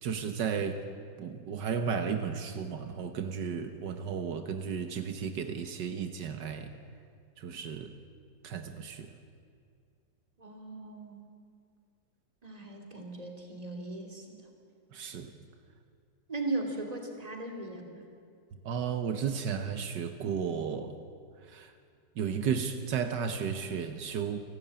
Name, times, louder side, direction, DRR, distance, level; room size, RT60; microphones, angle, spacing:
voice 1, 0.0-0.8 1.2-6.7 7.4-7.9 8.4-9.2 14.9-15.3 18.7-20.9 21.5-21.7 22.2-24.4, right 7 dB, 80° right, 8 dB, 1.8 m, -33 dB
voice 2, 10.4-11.2 12.4-14.4 16.3-18.0, right 2 dB, 20° right, 2 dB, 2.9 m, -38 dB
29.0 x 12.5 x 8.9 m, 2.2 s
omnidirectional pair, 1.9 m